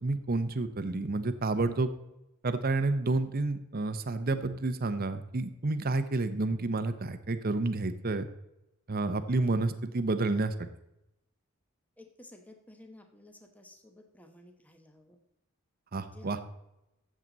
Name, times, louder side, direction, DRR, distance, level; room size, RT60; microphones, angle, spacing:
voice 1, 0.0-1.9 2.4-8.3 8.9-10.7 15.9-16.4, right 2 dB, 45° right, 10 dB, 0.8 m, -30 dB
voice 2, 12.0-15.2 15.9-16.5, left 1 dB, 5° left, 4 dB, 0.9 m, -54 dB
13.5 x 7.5 x 4.0 m, 0.89 s
head